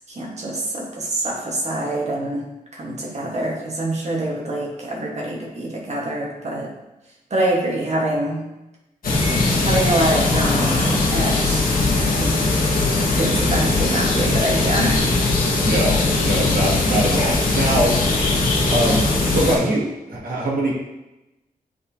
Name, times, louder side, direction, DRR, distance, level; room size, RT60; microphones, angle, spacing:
voice 1, 0.1-2.5 2.7-6.7 7.3-8.4 9.6-12.1 13.1-15.0, right 1 dB, 50° right, -2 dB, 1.3 m, -25 dB
sound 1, 9.0-19.6, left 2 dB, 80° left, 1.4 m, -20 dB
voice 2, 15.6-17.9 18.7-19.0 19.3-20.7, right 1 dB, 80° right, -4 dB, 1.7 m, -22 dB
8.4 x 4.1 x 2.8 m, 0.98 s
wide cardioid pair, 145°, 15 cm